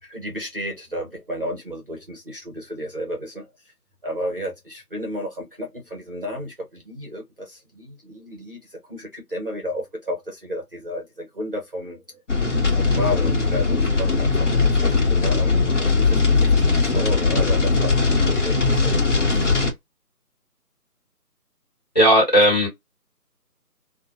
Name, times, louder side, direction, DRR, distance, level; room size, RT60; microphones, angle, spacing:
voice 1, 0.0-3.5 4.0-12.2 12.7-19.0 19.3-19.5, equal, 35° right, 0.7 m, -32 dB
sound 1, 12.3-19.7, left 4 dB, 50° left, 0.9 m, -19 dB
voice 2, 21.9-22.7, equal, 25° left, 1.2 m, -15 dB
2.5 x 2.1 x 2.8 m
figure-of-eight pair, 165°, 47 cm